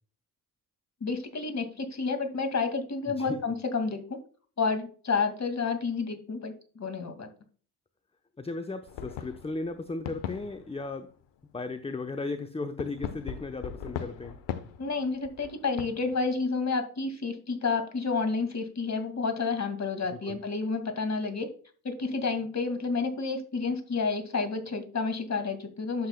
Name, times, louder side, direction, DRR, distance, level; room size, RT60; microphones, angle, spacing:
voice 1, 1.0-4.2 4.6-7.3 14.8-21.5 21.8-26.1, left 4 dB, 35° left, 7 dB, 2.2 m, -30 dB
voice 2, 8.4-11.1 11.5-14.4 20.1-20.4, left 3 dB, 15° left, 8 dB, 0.9 m, -36 dB
sound 1, 8.9-11.2 12.8-16.3, left 8 dB, 65° left, 1.1 m, -39 dB
11.5 x 7.6 x 2.3 m, 0.41 s
hypercardioid pair, 45°, 46 cm